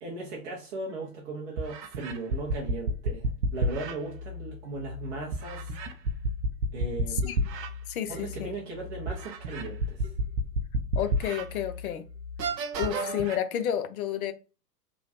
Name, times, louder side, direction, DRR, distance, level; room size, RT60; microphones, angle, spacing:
voice 1, 0.0-5.8 6.7-7.3 8.1-10.1, right 3 dB, 20° right, 0.4 m, -37 dB
sound 1, 0.9-1.0 1.6-4.0 5.3-7.7 8.2-8.3 9.1-11.4 11.9-12.0 12.4-13.4, right 1 dB, 80° right, 0.7 m, -30 dB
sound 2, 3.5-12.5, left 6 dB, 15° left, 1.3 m, -43 dB
voice 2, 7.1-7.5 7.9-8.5 11.0-12.1 12.8-14.3, left 10 dB, 60° left, 0.6 m, -31 dB
3.2 x 2.2 x 2.7 m
figure-of-eight pair, 105°, 50 cm